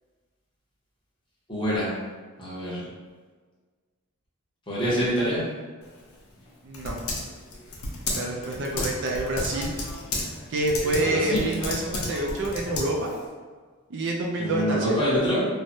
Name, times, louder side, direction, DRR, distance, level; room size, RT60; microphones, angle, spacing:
voice 1, 1.5-1.9 2.4-2.8 4.7-5.4 11.0-11.4 14.4-15.5, equal, 20° left, -9 dB, 0.8 m, -25 dB
Typing, 5.8-13.3, left 2 dB, 75° left, 0.6 m, -33 dB
voice 2, 6.6-6.9 8.2-9.7 10.5-13.1 13.9-15.0, right 1 dB, 55° right, -1 dB, 0.4 m, -27 dB
3.1 x 2.1 x 2.6 m, 1.5 s
head